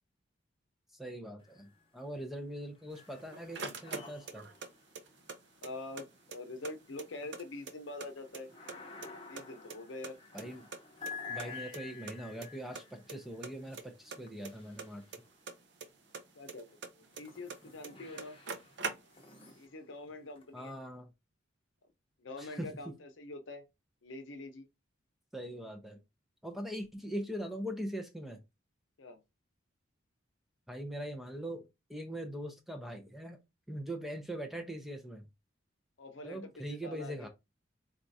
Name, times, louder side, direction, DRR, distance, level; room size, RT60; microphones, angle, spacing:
voice 1, 1.0-4.5 10.3-10.7 11.3-15.0 20.5-21.1 22.4-22.7 25.3-26.0 26.4-28.4 30.7-33.4 33.7-35.2 36.2-37.3, equal, ahead, 0.5 m, -41 dB
sound 1, 1.4-2.1 2.4-15.6 16.2-20.7, left 5 dB, 25° left, 0.7 m, -51 dB
sound 2, 2.9-4.7 4.9-6.0 6.3-6.4 6.6-8.1 8.3-9.1 9.4-10.8 11.1-11.2 11.4-11.5 11.7-11.8 12.1-12.5 12.7-13.2 13.4-15.9 16.1-17.6 17.8-17.9 18.2-19.4, right 4 dB, 60° right, 0.5 m, -42 dB
voice 2, 5.6-8.5 9.3-10.2 16.3-18.4 19.5-20.7 22.2-23.6 24.0-24.7 29.0-29.2 36.0-37.3, left 2 dB, 75° left, 0.8 m, -45 dB
4.3 x 2.4 x 2.6 m
head